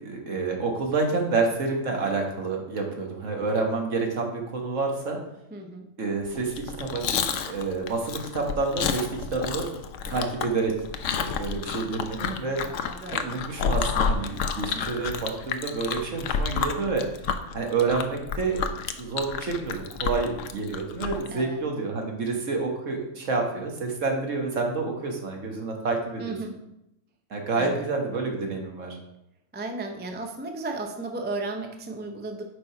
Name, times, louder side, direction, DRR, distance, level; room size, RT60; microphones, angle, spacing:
voice 1, 0.0-5.2 6.0-12.6 13.1-17.0 17.5-26.4 27.3-29.0, right 4 dB, 65° right, 1 dB, 1.6 m, -28 dB
voice 2, 5.5-5.9 12.6-13.3 21.3-21.6 26.2-26.5 27.6-27.9 29.5-32.4, right 2 dB, 15° right, 4 dB, 0.4 m, -34 dB
Chewing mastication, 6.5-21.3, left 6 dB, 70° left, 0.9 m, -30 dB
6.6 x 5.0 x 4.8 m, 0.85 s
omnidirectional pair, 1.4 m